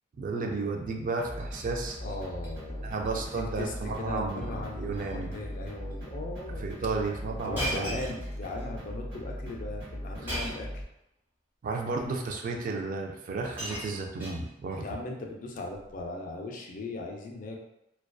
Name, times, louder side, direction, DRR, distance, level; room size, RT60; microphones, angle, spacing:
voice 1, 0.2-2.0 2.8-5.3 6.6-8.0 10.2-10.3 11.6-14.8, right 3 dB, 45° right, 2 dB, 0.3 m, -33 dB
Shatter, 1.2-1.7 2.0-2.5 2.8-3.1 3.4-3.5 4.3-4.6 4.9-5.2 5.9-6.0 7.5-8.7 10.3-10.8 11.8-11.9 12.9-13.0 13.3-14.8 15.7-16.0, equal, 10° right, 1.1 m, -38 dB
sound 1, 1.2-10.8, equal, 75° right, 0.7 m, -39 dB
voice 2, 2.0-3.2 3.6-6.6 7.4-10.8 14.8-17.6, left 2 dB, 45° left, 1 dB, 0.4 m, -38 dB
2.5 x 2.2 x 2.2 m, 0.85 s
head